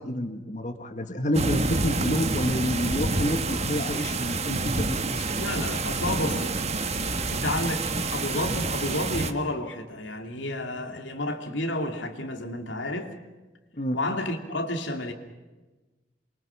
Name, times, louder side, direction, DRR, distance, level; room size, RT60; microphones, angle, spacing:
voice 1, 0.0-5.2 13.8-14.0, equal, 40° left, 6 dB, 2.0 m, -28 dB
sound 1, 1.3-9.3, right 3 dB, 35° right, 1.4 m, -28 dB
voice 2, 5.3-6.5 7.3-13.1 13.9-15.1, left 1 dB, 85° left, 5 dB, 2.9 m, -31 dB
28.0 x 23.5 x 5.9 m, 1.2 s
head